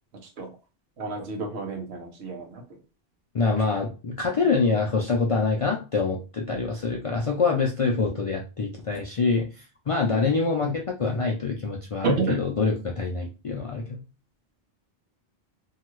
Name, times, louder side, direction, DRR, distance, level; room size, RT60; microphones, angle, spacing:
voice 1, 1.0-2.6 10.1-10.2 12.0-12.4, right 3 dB, 90° right, 2 dB, 1.1 m, -29 dB
voice 2, 3.3-9.5 9.9-14.0, left 4 dB, 55° left, 0 dB, 0.3 m, -25 dB
2.8 x 2.3 x 3.0 m, 0.31 s
omnidirectional pair, 1.1 m